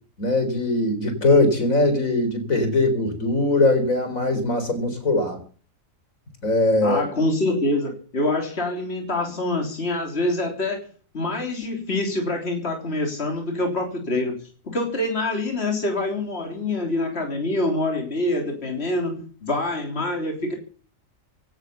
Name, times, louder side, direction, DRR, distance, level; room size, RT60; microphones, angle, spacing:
voice 1, 0.2-5.4 6.4-7.0, left 2 dB, 85° left, 8 dB, 4.4 m, -21 dB
voice 2, 6.8-10.8 11.1-14.4 14.7-20.5, left 2 dB, 50° left, 3 dB, 3.7 m, -25 dB
17.0 x 10.5 x 6.9 m, 0.42 s
omnidirectional pair, 1.4 m